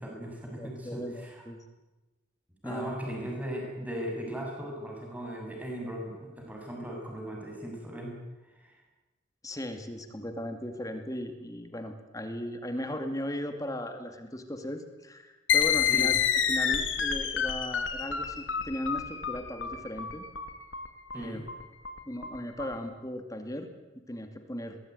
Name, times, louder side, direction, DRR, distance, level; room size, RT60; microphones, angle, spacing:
voice 1, 0.0-1.4 2.6-8.1 8.5-8.8 15.9-16.1 21.1-21.5, right 1 dB, 10° right, 0 dB, 7.4 m, -38 dB
voice 2, 0.5-1.6 2.6-2.9 9.4-16.2 16.5-20.3 21.1-21.4 22.1-23.7 24.1-24.8, left 1 dB, 20° left, 7 dB, 2.3 m, -37 dB
sound 1, 15.5-22.7, left 8 dB, 90° left, 2.7 m, -28 dB
23.5 x 20.0 x 9.6 m, 1.1 s
head